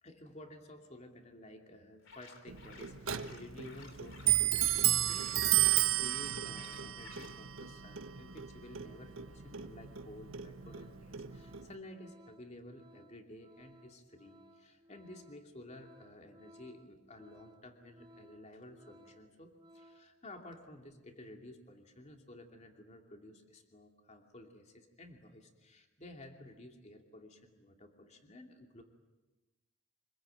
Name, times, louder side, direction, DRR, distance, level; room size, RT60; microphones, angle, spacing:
voice 1, 0.0-28.8, left 1 dB, 35° left, 3 dB, 2.7 m, -53 dB
sound 1, 2.0-7.4, left 4 dB, 65° left, 3.2 m, -56 dB
Clock, 2.5-11.7, right 14 dB, 85° right, 1.3 m, -33 dB
Organ, 10.2-10.3 10.6-20.2 20.5-20.7, equal, 20° right, 1.6 m, -61 dB
26.0 x 21.5 x 9.2 m, 1.1 s
head